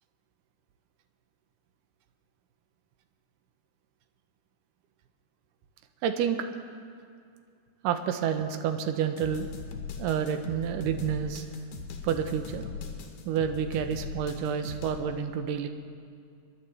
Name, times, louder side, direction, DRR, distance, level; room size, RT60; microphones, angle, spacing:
voice 1, 6.0-6.4 7.8-9.5 10.0-11.5 12.0-12.7 13.3-15.7, right 8 dB, 80° right, 7 dB, 2.3 m, -29 dB
sound 1, 9.2-15.0, left 6 dB, 70° left, 2.5 m, -40 dB
28.0 x 11.0 x 3.3 m, 2.3 s
omnidirectional pair, 3.9 m